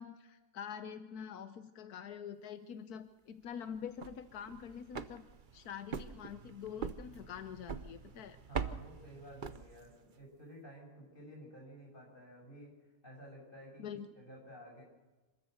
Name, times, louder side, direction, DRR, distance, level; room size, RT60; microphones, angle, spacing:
voice 1, 0.0-5.2 5.5-8.4 13.8-14.1, left 8 dB, 90° left, 10 dB, 1.4 m, -45 dB
sound 1, 3.8-10.1, right 6 dB, 40° right, 0.8 m, -44 dB
voice 2, 8.5-13.8 14.2-14.8, equal, 35° left, -1 dB, 7.3 m, -53 dB
26.5 x 13.5 x 8.0 m, 1.2 s
omnidirectional pair, 1.6 m